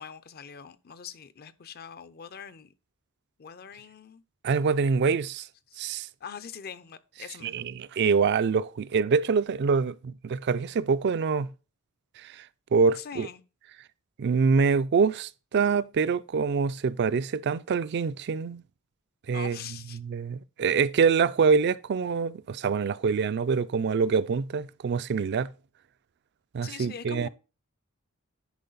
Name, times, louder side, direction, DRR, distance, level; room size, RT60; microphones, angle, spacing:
voice 1, 0.0-2.7 3.4-4.2 5.7-7.7 12.9-13.4 19.3-20.0 26.6-27.3, left 7 dB, 45° left, 0.5 m, -43 dB
voice 2, 4.4-5.5 5.8-6.1 7.4-11.5 12.2-12.3 12.7-13.3 14.2-18.6 19.3-19.6 20.0-25.5 26.5-27.3, right 5 dB, 50° right, 0.3 m, -25 dB
10.5 x 4.6 x 3.9 m
head